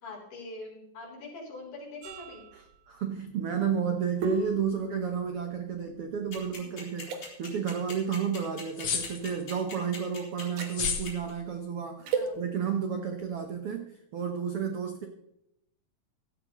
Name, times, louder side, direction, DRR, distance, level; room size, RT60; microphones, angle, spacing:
voice 1, 0.0-2.5 11.5-11.7 12.0-12.4, left 2 dB, 75° left, -3 dB, 5.8 m, -44 dB
sound 1, 2.0-6.5 7.0-7.2 8.9-9.1 10.4-10.8 12.0-12.3, right 3 dB, 60° right, 2.6 m, -36 dB
voice 2, 2.5-15.1, right 7 dB, 85° right, 4 dB, 1.2 m, -32 dB
sound 2, 6.3-11.3, left 4 dB, 30° left, 4.6 m, -41 dB
sound 3, 8.8-9.4 10.7-11.1, left 6 dB, 60° left, 1.3 m, -31 dB
16.0 x 12.5 x 3.1 m, 0.82 s
omnidirectional pair, 4.2 m